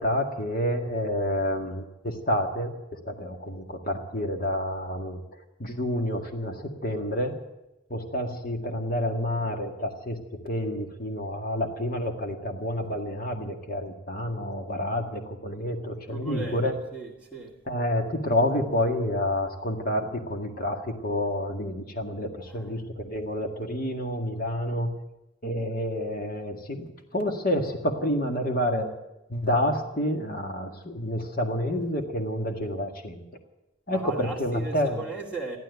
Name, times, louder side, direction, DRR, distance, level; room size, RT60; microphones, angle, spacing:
voice 1, 0.0-2.7 3.0-5.2 5.6-7.4 7.9-10.2 10.4-16.8 17.7-24.9 25.4-26.9 27.1-28.9 29.3-33.2 33.9-35.0, left 1 dB, 50° left, 4 dB, 1.9 m, -29 dB
voice 2, 16.1-16.6 16.9-17.5 22.5-22.7 33.9-35.6, right 3 dB, 10° left, -6 dB, 2.2 m, -37 dB
15.0 x 12.0 x 8.1 m, 0.96 s
head